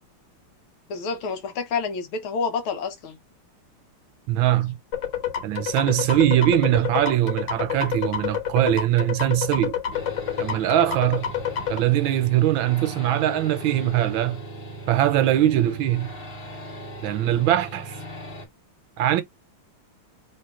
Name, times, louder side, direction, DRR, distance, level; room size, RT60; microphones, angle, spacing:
voice 1, 0.9-3.2, left 5 dB, 80° left, 1.9 m, -28 dB
voice 2, 4.3-4.8 5.4-9.7 10.4-11.3 11.7-14.4 14.9-16.1 17.0-18.0 19.0-19.2, right 13 dB, 75° right, 1.5 m, -21 dB
sound 1, 4.9-11.8, left 9 dB, 65° left, 1.8 m, -28 dB
sound 2, 9.9-18.4, right 1 dB, 30° left, 1.4 m, -38 dB
3.5 x 3.0 x 4.6 m
omnidirectional pair, 2.3 m